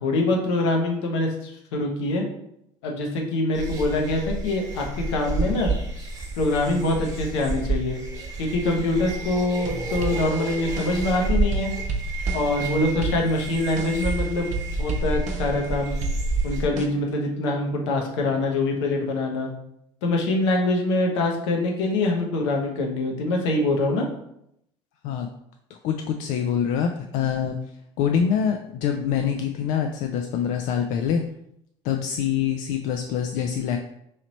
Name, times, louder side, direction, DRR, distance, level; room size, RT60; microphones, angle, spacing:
voice 1, 0.0-2.2 2.8-5.7 6.4-8.0 8.4-11.7 12.3-14.5 14.8-15.9 16.4-19.5 20.0-24.0, left 2 dB, 75° left, 1 dB, 0.8 m, -24 dB
sound 1, 3.5-16.7, right 3 dB, 20° right, 1.2 m, -29 dB
sound 2, 9.6-11.2 11.5-12.7 13.0-14.2 14.5-15.7 16.0-16.9, right 3 dB, 55° right, 0.7 m, -33 dB
voice 2, 25.7-27.6 28.0-31.2 31.8-33.8, left 8 dB, 60° left, 4 dB, 0.4 m, -25 dB
3.2 x 2.9 x 4.0 m, 0.77 s
hypercardioid pair, 70°, 15 cm